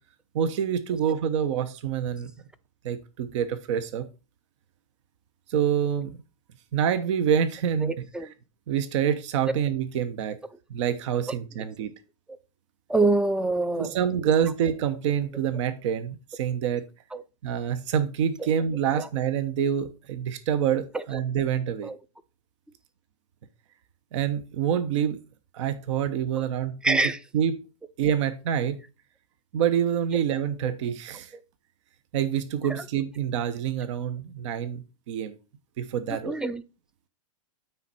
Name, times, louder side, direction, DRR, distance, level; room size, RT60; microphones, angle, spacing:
voice 1, 0.3-2.3 2.8-4.1 5.5-6.2 6.7-8.0 8.7-10.4 10.7-11.9 13.8-16.8 17.4-21.9 24.1-25.2 25.5-27.0 27.3-27.5 28.0-28.8 29.5-31.3 32.1-35.4 35.8-36.4, right 8 dB, 60° right, 1.0 m, -26 dB
voice 2, 7.8-8.3 11.3-11.4 12.9-14.0 14.2-14.3 17.1-17.2 18.4-18.5 18.9-19.1 20.9-21.2 21.8-22.0 26.4-26.5 26.8-27.2 32.7-32.9 36.1-36.6, right 2 dB, 5° right, 0.4 m, -26 dB
9.2 x 4.5 x 4.1 m
hypercardioid pair, 135°, 17 cm